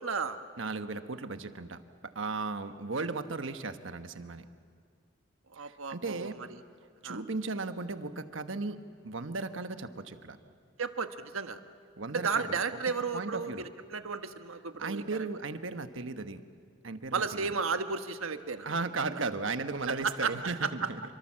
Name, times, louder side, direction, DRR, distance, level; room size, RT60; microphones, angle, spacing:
voice 1, 0.0-0.4 5.5-6.6 7.0-7.2 10.8-11.6 12.1-15.3 17.1-18.7 19.9-20.9, right 5 dB, 90° right, 8 dB, 1.3 m, -33 dB
voice 2, 0.6-4.4 5.6-6.4 7.0-10.4 12.0-12.6 13.1-13.6 14.8-16.4 16.8-17.5 18.6-21.0, right 3 dB, 70° right, 9 dB, 1.2 m, -36 dB
28.0 x 24.5 x 7.6 m, 2.1 s
head